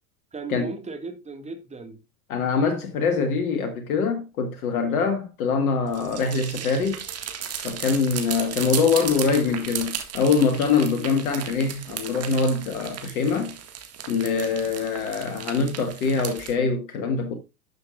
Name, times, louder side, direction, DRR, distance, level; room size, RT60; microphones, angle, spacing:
voice 1, 0.3-2.0 4.9-5.1 5.9-6.0, right 4 dB, 15° right, 1.9 m, -36 dB
voice 2, 2.3-7.0 7.6-13.5 14.1-17.3, left 5 dB, 65° left, 1.6 m, -24 dB
sound 1, 5.9-16.5, right 8 dB, 30° right, 1.8 m, -35 dB
12.0 x 6.6 x 2.4 m
hypercardioid pair, 85°, 47 cm